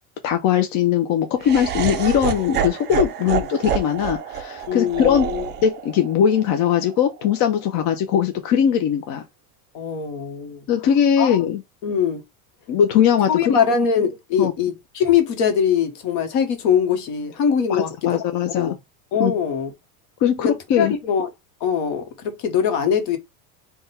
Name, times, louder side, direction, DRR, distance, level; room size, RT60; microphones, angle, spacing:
voice 1, 0.2-5.3 5.6-9.2 10.7-11.6 12.7-13.6 14.4-14.5 17.7-18.7 19.2-19.3 20.2-20.9, left 9 dB, 40° left, 0.5 m, -20 dB
Laughter, 1.4-7.6, right 8 dB, 25° right, 0.4 m, -28 dB
voice 2, 4.7-5.4 9.7-10.6 11.2-11.4 11.8-12.2 13.3-17.9 18.5-18.7 19.1-19.7 20.4-21.3 21.6-23.2, left 7 dB, 60° left, 1.1 m, -22 dB
3.5 x 2.3 x 4.2 m
supercardioid pair, 125°, 45 cm